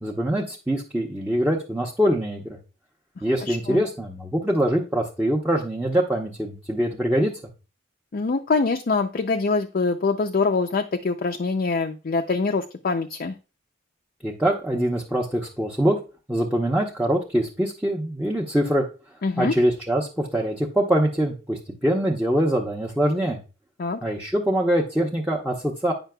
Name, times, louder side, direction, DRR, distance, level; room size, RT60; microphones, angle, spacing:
voice 1, 0.0-2.6 3.2-7.3 14.2-16.0 16.3-18.8 19.4-23.4 24.0-25.9, right 1 dB, 5° right, -3 dB, 0.8 m, -23 dB
voice 2, 3.4-3.8 8.1-13.4 19.2-19.5 23.8-24.0, left 4 dB, 45° left, 5 dB, 0.5 m, -24 dB
8.9 x 5.7 x 2.3 m, 0.32 s
head